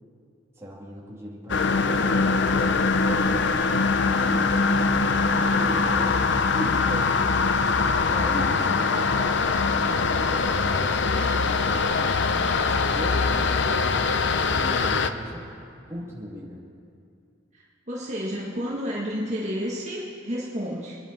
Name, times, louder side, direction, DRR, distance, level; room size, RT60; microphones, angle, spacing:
voice 1, 0.6-3.5 4.1-4.5 5.3-6.2 6.5-7.5 8.1-12.4 12.6-15.4 15.7-16.6, equal, 15° right, -5 dB, 2.8 m, -38 dB
sound 1, 1.5-15.1, left 4 dB, 65° left, 0.7 m, -22 dB
voice 2, 17.5-21.0, equal, 35° right, -5 dB, 1.8 m, -31 dB
26.5 x 10.5 x 4.4 m, 2.4 s
head